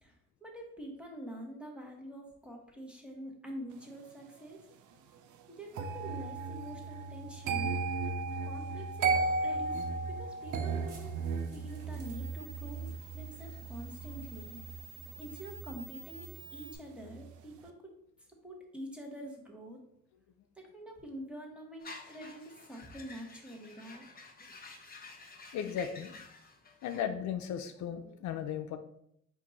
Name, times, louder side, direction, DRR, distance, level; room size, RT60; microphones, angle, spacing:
voice 1, 0.0-4.7 5.5-7.8 8.4-11.2 11.5-14.6 15.2-19.8 20.6-24.1, right 1 dB, 5° right, 0 dB, 1.1 m, -46 dB
sound 1, 5.7-16.7 17.0-17.4, right 4 dB, 75° right, 0.5 m, -36 dB
sound 2, 10.4-16.7, right 3 dB, 55° right, 1.1 m, -52 dB
sound 3, 21.8-27.0, left 3 dB, 30° left, 0.7 m, -51 dB
voice 2, 25.5-26.1 26.8-28.8, left 8 dB, 70° left, 8 dB, 0.4 m, -36 dB
4.5 x 2.5 x 3.9 m, 0.74 s
cardioid pair, 90°, 30 cm